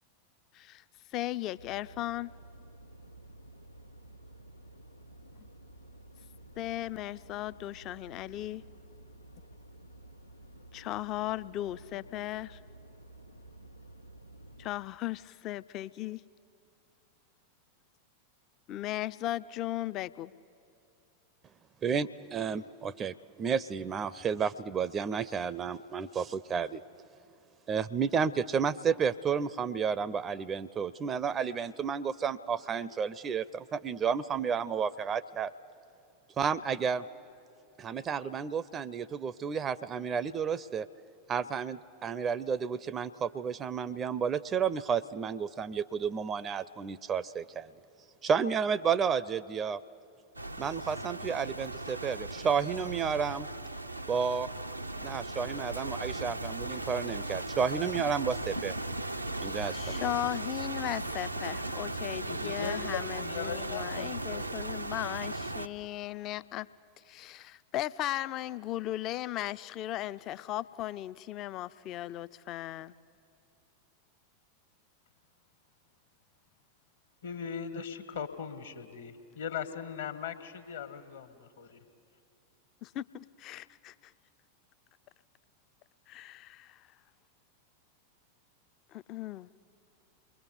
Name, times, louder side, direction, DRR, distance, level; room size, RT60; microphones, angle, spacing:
voice 1, 0.5-0.8 1.1-2.3 6.6-8.6 10.7-12.6 14.6-16.2 18.7-20.3 59.7-66.7 67.0-72.9 82.8-84.1 86.1-86.9 88.9-89.5, left 14 dB, 35° left, 16 dB, 0.5 m, -37 dB
sound 1, 1.6-14.7, right 1 dB, 85° left, 0.8 m, -53 dB
voice 2, 21.8-26.8 27.7-35.5 36.4-37.1 37.8-40.9 41.3-47.7 48.2-49.8 50.6-53.5 54.1-54.5 55.0-58.7 59.4-60.1, right 6 dB, 25° right, 18 dB, 0.5 m, -31 dB
sound 2, 50.4-65.7, right 2 dB, 85° right, 0.6 m, -37 dB
voice 3, 62.3-64.8 77.2-81.8, left 7 dB, 65° left, 10 dB, 1.5 m, -39 dB
29.0 x 22.0 x 7.0 m, 2.6 s
figure-of-eight pair, 90°, 0 cm